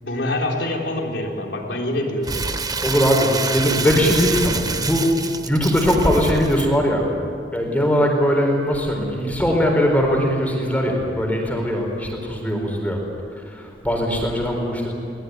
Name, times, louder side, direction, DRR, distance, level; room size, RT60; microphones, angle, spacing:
voice 1, 0.0-2.4 13.9-14.2, left 1 dB, 80° left, 0 dB, 3.9 m, -26 dB
Crumpling crinkling, 2.2-6.7, right 4 dB, 20° right, 1.0 m, -27 dB
voice 2, 2.8-5.1 5.5-7.1 7.5-13.0 13.4-14.9, equal, 10° left, 1 dB, 4.2 m, -20 dB
23.0 x 19.0 x 9.4 m, 2.3 s
head